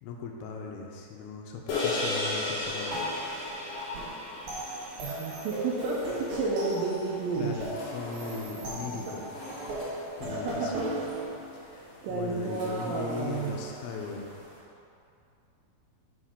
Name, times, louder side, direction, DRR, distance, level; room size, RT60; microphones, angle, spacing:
voice 1, 0.0-3.0 7.4-9.2 10.2-10.8 11.5-14.3, left 4 dB, 85° left, 1 dB, 2.5 m, -38 dB
sound 1, 1.7-6.3, left 2 dB, 60° left, 2.2 m, -34 dB
sound 2, 2.6-14.6, equal, 45° left, 2.1 m, -48 dB
sound 3, 2.9-11.3, equal, 60° right, 1.5 m, -37 dB
voice 2, 5.0-7.6 10.3-10.9 11.7-13.6, right 4 dB, 85° right, -4 dB, 2.0 m, -32 dB
6.1 x 5.0 x 5.6 m, 2.6 s
omnidirectional pair, 4.6 m